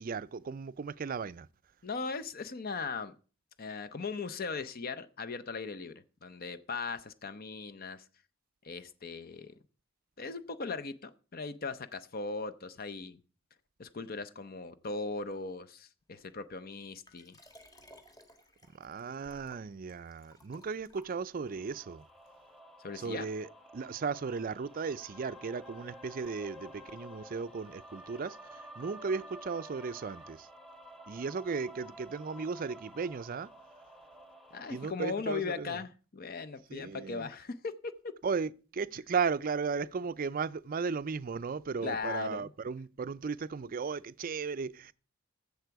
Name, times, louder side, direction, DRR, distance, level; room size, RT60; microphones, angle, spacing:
voice 1, 0.0-1.5 18.8-22.0 23.0-30.5 31.1-33.5 34.7-35.8 36.7-37.3 38.2-44.9, right 5 dB, 40° right, 0.4 m, -36 dB
voice 2, 1.8-3.1 3.6-8.0 8.6-9.5 10.2-13.2 13.8-17.4 22.8-23.3 34.5-37.9 41.8-42.5, left 4 dB, 45° left, 0.6 m, -38 dB
Liquid, 17.0-21.6 22.3-22.4, left 1 dB, 20° left, 1.4 m, -58 dB
sound 1, 21.3-34.9, equal, ahead, 1.1 m, -51 dB
14.5 x 6.9 x 4.7 m
head